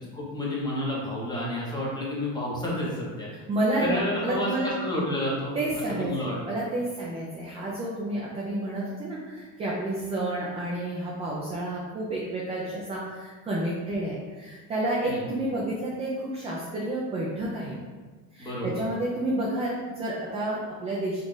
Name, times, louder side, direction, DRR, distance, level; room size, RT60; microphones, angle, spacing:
voice 1, 0.1-3.3 3.8-5.5 6.0-6.4 15.1-15.2 18.4-18.8, left 1 dB, 10° left, -5 dB, 1.0 m, -30 dB
voice 2, 3.5-4.7 5.5-17.8 18.3-21.2, right 1 dB, 15° right, -4 dB, 0.4 m, -30 dB
5.0 x 2.5 x 3.8 m, 1.4 s
cardioid pair, 155°, 40 cm